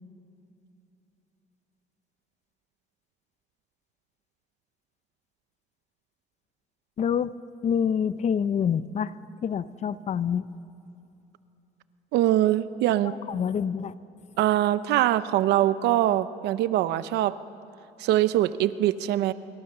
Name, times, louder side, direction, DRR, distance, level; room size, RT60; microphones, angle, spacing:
voice 1, 7.0-7.3 7.6-9.1 9.4-10.5 13.0-13.9, left 7 dB, 40° left, 15 dB, 0.7 m, -26 dB
voice 2, 12.1-13.1 14.4-17.4 18.0-19.3, right 13 dB, 85° right, 14 dB, 0.8 m, -23 dB
25.0 x 23.5 x 6.8 m, 2.8 s
cardioid pair, 110°, 17 cm